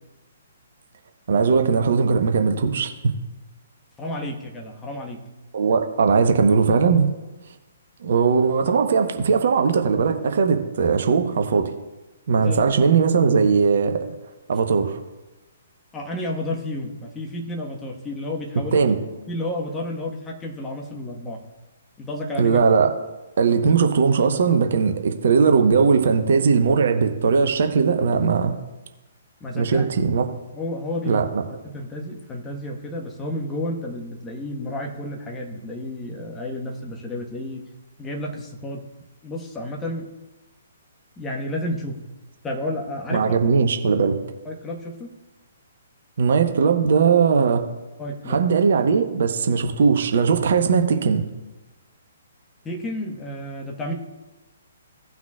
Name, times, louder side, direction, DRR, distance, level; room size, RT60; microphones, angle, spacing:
voice 1, 1.3-2.9 5.5-7.1 8.0-11.7 12.3-14.0 14.5-15.0 18.7-19.0 22.4-22.9 23.4-28.6 29.5-30.2 31.0-31.4 43.1-44.2 46.2-47.6 48.3-51.2, right 5 dB, 55° right, 6 dB, 1.0 m, -19 dB
voice 2, 4.0-5.2 12.4-12.6 15.9-18.8 19.3-21.4 22.0-22.6 29.4-29.9 30.5-31.3 31.6-37.7 38.0-38.9 39.2-40.1 41.2-42.0 42.4-43.4 44.4-45.1 48.0-48.5 52.6-53.9, left 1 dB, 15° left, 0 dB, 1.4 m, -31 dB
17.0 x 5.9 x 2.4 m, 1.1 s
figure-of-eight pair, 125°, 0 cm